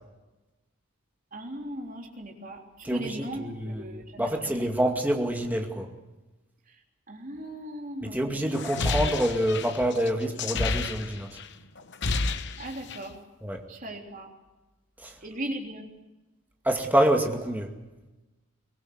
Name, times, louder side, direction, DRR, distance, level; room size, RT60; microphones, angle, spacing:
voice 1, 1.3-4.7 6.7-6.8 7.1-9.0 12.6-13.2 13.7-14.3 15.2-15.9, right 1 dB, 40° right, 2 dB, 3.5 m, -38 dB
voice 2, 2.8-5.9 8.1-11.3 13.4-13.6 15.0-15.1 16.6-17.7, right 1 dB, 10° right, 2 dB, 2.3 m, -27 dB
sound 1, 8.5-11.5 11.8-13.1, left 3 dB, 55° left, 1.1 m, -30 dB
23.0 x 20.0 x 8.1 m, 1.1 s
head